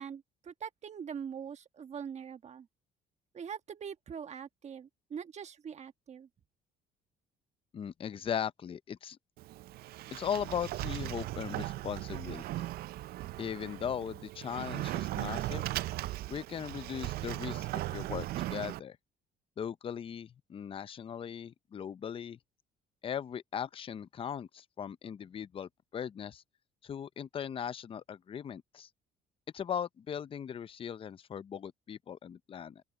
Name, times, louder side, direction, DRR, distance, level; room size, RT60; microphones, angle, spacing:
voice 1, 0.0-2.7 3.3-6.3, right 7 dB, 40° right, 1.4 m, -43 dB
voice 2, 7.7-9.2 10.1-12.7 13.4-15.7 16.3-19.0 19.6-22.4 23.0-26.4 26.8-28.9 29.5-32.8, left 8 dB, 30° left, 0.5 m, -38 dB
Sliding door, 9.4-18.8, right 16 dB, 65° right, 0.4 m, -38 dB
open air
cardioid pair, 110°, 17 cm